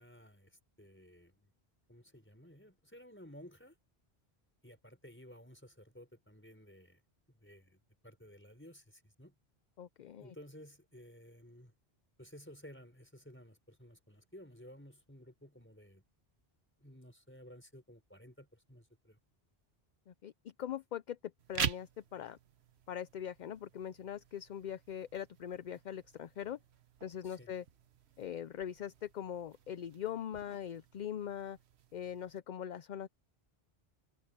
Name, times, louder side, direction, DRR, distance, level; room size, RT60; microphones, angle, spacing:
voice 1, 0.0-1.5 1.9-3.8 4.6-7.0 7.3-9.3 10.2-11.7 12.2-16.0 16.8-19.2 27.2-27.5, equal, 10° left, 5.3 m, -55 dB
voice 2, 9.8-10.3 20.1-20.3 20.6-21.2 21.5-22.4 22.9-26.6 27.0-27.6 28.2-31.6 31.9-33.1, left 9 dB, 55° left, 0.6 m, -41 dB
sound 1, 21.4-32.4, right 8 dB, 90° right, 1.2 m, -46 dB
omnidirectional pair, 1.1 m